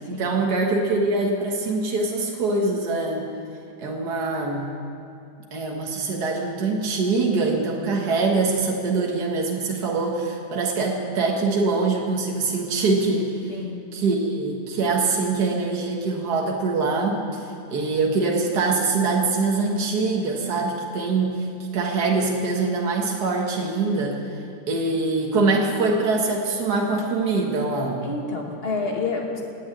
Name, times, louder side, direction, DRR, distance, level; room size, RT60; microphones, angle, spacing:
voice 1, 0.1-3.3 3.8-4.7 5.5-13.3 13.9-21.5 21.7-24.2 24.7-28.1, right 3 dB, 65° right, 0 dB, 2.1 m, -23 dB
voice 2, 13.5-13.8 28.0-29.4, left 3 dB, 35° left, 0 dB, 2.1 m, -29 dB
18.0 x 8.0 x 9.1 m, 2.6 s
omnidirectional pair, 1.8 m